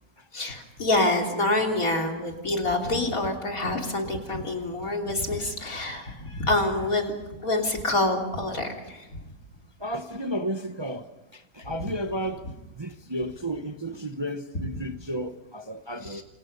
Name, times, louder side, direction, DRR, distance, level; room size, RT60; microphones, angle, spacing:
voice 1, 0.3-7.1 7.4-9.0 14.5-14.7 16.1-16.2, left 2 dB, 70° left, 3.9 m, -26 dB
voice 2, 9.8-12.5 12.8-16.2, equal, 20° right, 0.9 m, -33 dB
28.5 x 27.5 x 5.5 m
omnidirectional pair, 1.6 m